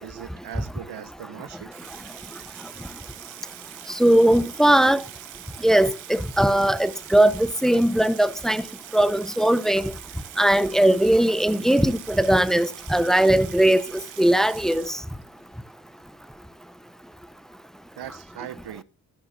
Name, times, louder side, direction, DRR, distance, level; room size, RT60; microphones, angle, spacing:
voice 1, 0.0-1.7 18.0-18.8, right 10 dB, 55° right, 1.1 m, -39 dB
Water tap faucet / Sink (filling or washing), 1.7-15.4, right 13 dB, 85° right, 1.5 m, -43 dB
voice 2, 4.0-5.0 5.6-8.6 8.9-9.9 10.4-13.8 14.2-14.8, right 1 dB, ahead, 0.9 m, -19 dB
13.5 x 12.5 x 2.8 m
hypercardioid pair, 40°, 47 cm